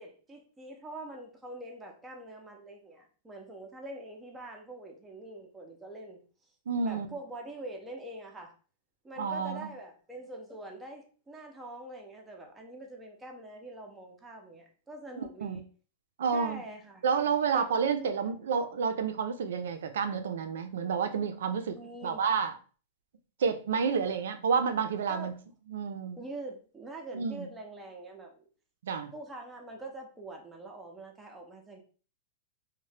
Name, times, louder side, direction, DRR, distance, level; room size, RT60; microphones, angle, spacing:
voice 1, 0.0-6.2 6.8-8.5 9.0-15.6 16.3-17.0 17.5-18.2 21.7-22.2 25.1-25.3 26.2-28.5 29.1-31.8, right 2 dB, 5° right, 0.4 m, -44 dB
voice 2, 6.7-7.1 9.2-9.7 15.4-15.6 16.2-16.6 17.0-22.5 23.4-25.3 25.7-26.2 27.1-27.5 28.8-29.1, right 6 dB, 85° right, 0.4 m, -30 dB
2.7 x 2.1 x 3.2 m
supercardioid pair, 170°, 0 cm